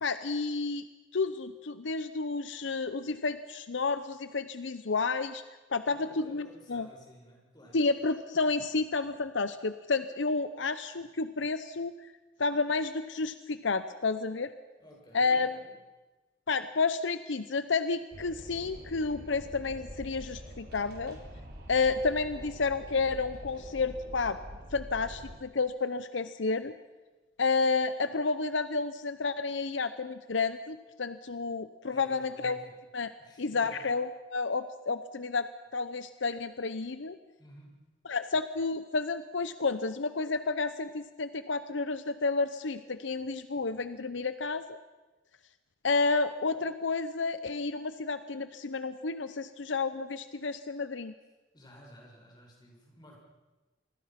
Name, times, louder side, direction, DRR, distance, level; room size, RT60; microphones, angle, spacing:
voice 1, 0.0-0.8 1.1-5.4 5.7-6.9 7.7-11.9 12.4-14.5 15.1-15.5 16.5-21.2 21.7-24.4 24.7-26.7 27.4-32.6 32.9-33.1 33.4-37.2 38.1-44.8 45.8-51.1, left 4 dB, 70° left, 12 dB, 0.8 m, -31 dB
voice 2, 5.9-7.8 14.8-15.7 31.9-32.8 33.2-33.9 37.4-37.8 51.5-53.2, equal, 20° left, -1 dB, 6.3 m, -53 dB
Wind, 18.1-25.4, equal, 55° right, 5.1 m, -46 dB
27.5 x 21.0 x 5.9 m, 1.2 s
head